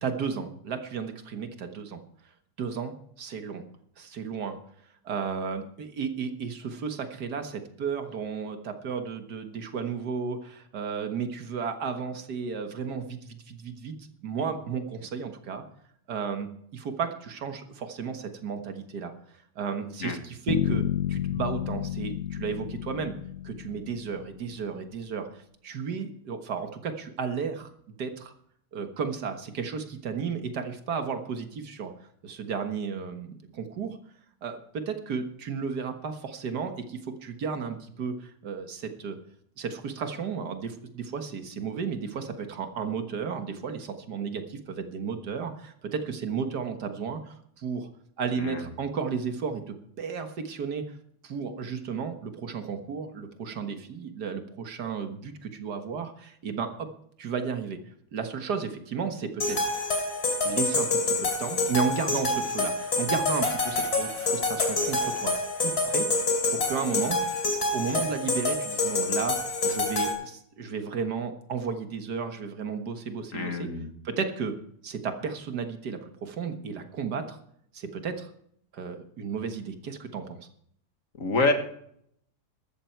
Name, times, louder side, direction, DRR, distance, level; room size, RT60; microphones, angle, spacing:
voice 1, 0.0-2.0 2.6-3.6 4.0-4.6 5.0-14.0 14.2-15.6 16.1-19.1 19.6-23.1 23.4-28.3 28.7-31.9 32.2-34.0 34.4-39.2 39.6-47.9 48.2-50.9 51.2-56.9 57.2-57.8 58.1-59.7 60.4-65.3 65.6-66.1 66.5-67.2 67.7-73.7 74.0-74.6 74.8-77.4 77.7-78.3 78.7-80.5, right 6 dB, 85° right, 7 dB, 2.0 m, -33 dB
Bass guitar, 20.5-24.5, left 12 dB, 90° left, 1.4 m, -31 dB
sound 1, 59.4-70.1, left 2 dB, 70° left, 3.4 m, -27 dB
voice 2, 73.3-73.9 81.2-81.5, left 3 dB, 55° left, 6 dB, 2.1 m, -27 dB
14.0 x 13.5 x 4.6 m, 0.68 s
omnidirectional pair, 1.7 m